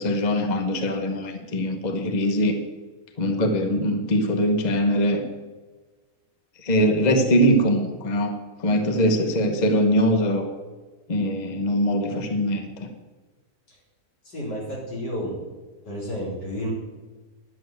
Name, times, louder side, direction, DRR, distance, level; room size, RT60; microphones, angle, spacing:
voice 1, 0.0-2.6 3.2-5.2 6.6-10.5 11.1-12.9, equal, 30° left, 5 dB, 1.1 m, -22 dB
voice 2, 14.3-15.3 15.9-16.7, equal, 85° left, -4 dB, 4.5 m, -31 dB
10.5 x 7.6 x 7.8 m, 1.3 s
omnidirectional pair, 1.8 m